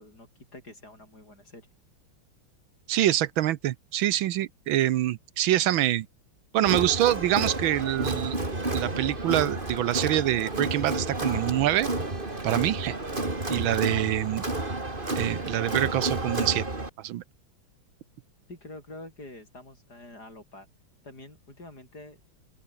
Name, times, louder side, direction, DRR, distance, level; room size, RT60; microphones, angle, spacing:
voice 1, 0.0-1.7 18.5-20.7 21.0-22.2, left 2 dB, 50° left, 8.8 m, -46 dB
voice 2, 2.9-6.1 6.5-8.4 8.7-11.9 12.4-12.9 13.5-14.4 15.2-16.6 17.0-17.2, right 13 dB, 75° right, 1.5 m, -25 dB
Crowd, 6.7-16.9, right 2 dB, 25° right, 3.6 m, -31 dB
open air
omnidirectional pair, 2.3 m